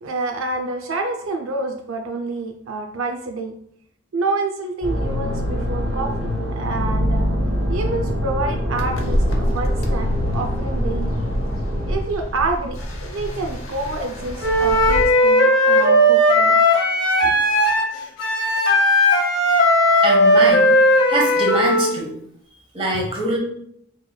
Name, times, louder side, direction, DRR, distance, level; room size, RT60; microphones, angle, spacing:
voice 1, 0.0-3.5 4.1-7.3 7.7-11.2 11.9-16.6 17.2-17.3, right 3 dB, 80° right, 4 dB, 0.5 m, -28 dB
sound 1, 4.8-12.0, equal, 60° right, 1.3 m, -24 dB
sound 2, 8.7-15.1, equal, 90° left, 0.8 m, -26 dB
Wind instrument woodwind instrument, 14.4-21.9, left 1 dB, 65° left, 1.4 m, -16 dB
voice 2, 20.0-20.7 21.1-22.1 22.5-23.4, right 2 dB, 25° right, -2 dB, 1.2 m, -23 dB
4.7 x 4.4 x 2.2 m, 0.70 s
head